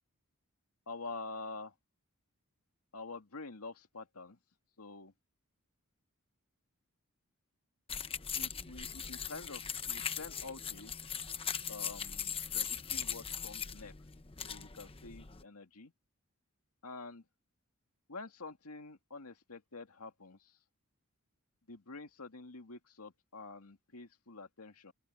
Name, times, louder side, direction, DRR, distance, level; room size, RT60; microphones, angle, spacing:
voice 1, 0.9-1.7 2.9-4.4 4.8-5.1 8.4-10.9 11.7-13.9 14.4-15.9 16.8-17.3 18.1-20.6 21.7-24.9, left 3 dB, 80° left, 2.2 m, -47 dB
sound 1, 7.9-15.4, left 7 dB, 25° left, 0.9 m, -40 dB
open air
head